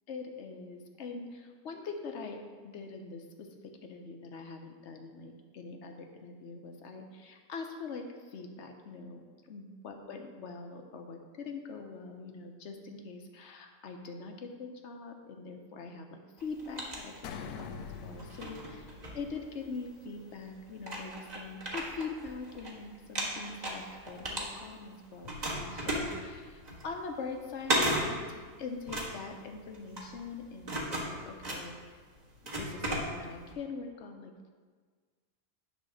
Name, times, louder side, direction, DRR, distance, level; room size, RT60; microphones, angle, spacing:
voice 1, 0.1-18.8 19.1-31.8 32.6-34.5, left 4 dB, 55° left, 4 dB, 0.9 m, -43 dB
sound 1, 16.4-17.7 18.2-19.8 20.4-20.5 20.8-22.7 23.0-24.9 25.2-33.5, right 1 dB, 30° right, 1.3 m, -35 dB
sound 2, 17.2-19.8, left 6 dB, 80° left, 1.1 m, -44 dB
10.0 x 3.6 x 6.3 m, 1.5 s
omnidirectional pair, 1.7 m